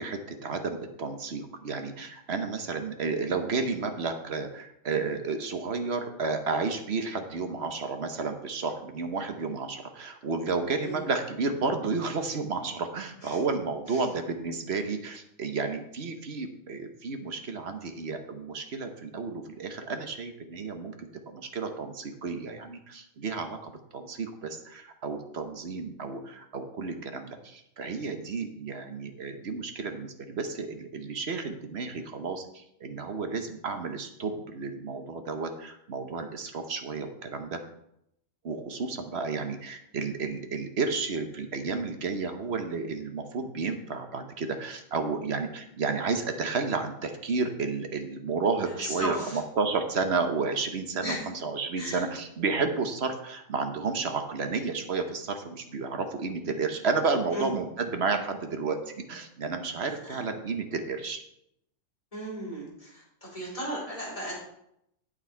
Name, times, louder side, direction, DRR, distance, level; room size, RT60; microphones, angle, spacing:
voice 1, 0.0-37.6 38.4-58.8 59.1-61.2, right 4 dB, 55° right, 6 dB, 1.2 m, -32 dB
voice 2, 48.7-49.4 51.0-51.2 51.8-52.0 57.3-57.5 60.0-60.1 62.1-64.3, equal, 25° left, -5 dB, 4.1 m, -35 dB
8.7 x 8.5 x 4.5 m, 0.77 s
omnidirectional pair, 1.4 m